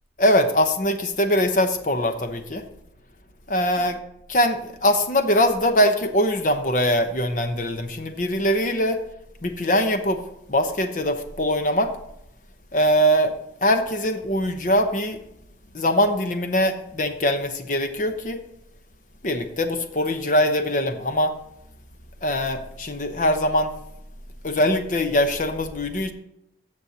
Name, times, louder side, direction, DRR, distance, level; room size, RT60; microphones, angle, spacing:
voice 1, 0.2-2.6 3.5-4.0 4.3-9.0 9.4-10.2 10.5-11.9 12.7-13.3 13.6-15.2 15.7-18.4 19.2-21.3 22.2-23.7 24.4-26.1, equal, 45° left, 7 dB, 0.9 m, -22 dB
15.5 x 6.5 x 2.8 m, 0.83 s
head